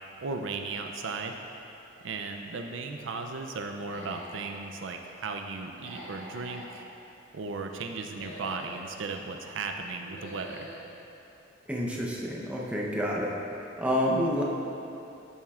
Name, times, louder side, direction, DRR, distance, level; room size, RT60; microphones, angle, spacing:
voice 1, 0.2-1.4 2.0-6.8 7.3-10.7, right 4 dB, 70° right, 4 dB, 0.5 m, -36 dB
Human voice / Animal, 3.8-4.6 5.7-6.7 8.0-8.8 10.0-10.8, right 1 dB, 70° left, 1.6 m, -44 dB
voice 2, 11.7-13.3 13.8-14.4, equal, 5° right, -4 dB, 0.8 m, -28 dB
12.0 x 7.3 x 2.4 m, 2.9 s
head